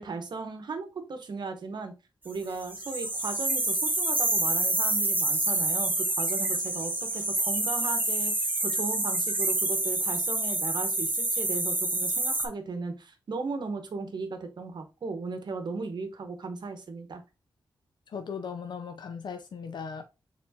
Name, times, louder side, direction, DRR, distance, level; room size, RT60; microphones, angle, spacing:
voice 1, 0.0-1.9 2.2-17.2, right 4 dB, 65° right, 0.9 m, -36 dB
sound 1, 2.6-12.5, right 2 dB, 20° right, 1.0 m, -27 dB
voice 2, 18.1-20.1, left 6 dB, 65° left, 0.5 m, -37 dB
4.4 x 3.6 x 2.7 m
cardioid pair, 75°, 8 cm